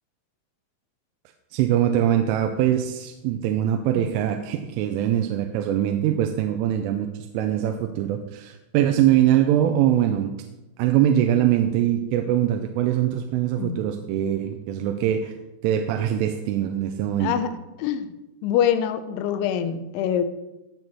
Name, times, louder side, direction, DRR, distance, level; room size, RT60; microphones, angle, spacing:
voice 1, 1.5-7.1 7.3-10.3 10.8-15.3 15.6-17.3, right 11 dB, 90° right, 5 dB, 3.2 m, -22 dB
voice 2, 17.2-18.1 18.4-20.2, left 9 dB, 80° left, 10 dB, 3.0 m, -25 dB
17.5 x 6.2 x 4.1 m, 1.0 s
omnidirectional pair, 5.6 m